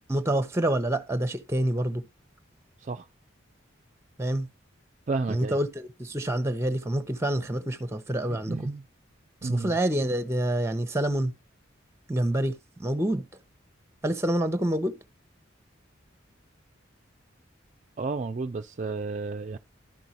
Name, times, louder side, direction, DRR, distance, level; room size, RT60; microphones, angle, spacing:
voice 1, 0.1-2.0 4.2-4.5 5.3-8.7 9.4-11.3 12.1-13.2 14.0-15.0, right 1 dB, 15° right, 0.8 m, -27 dB
voice 2, 5.1-5.6 8.3-8.8 9.4-9.7 18.0-19.6, right 3 dB, 35° right, 0.4 m, -32 dB
12.0 x 5.4 x 2.9 m
head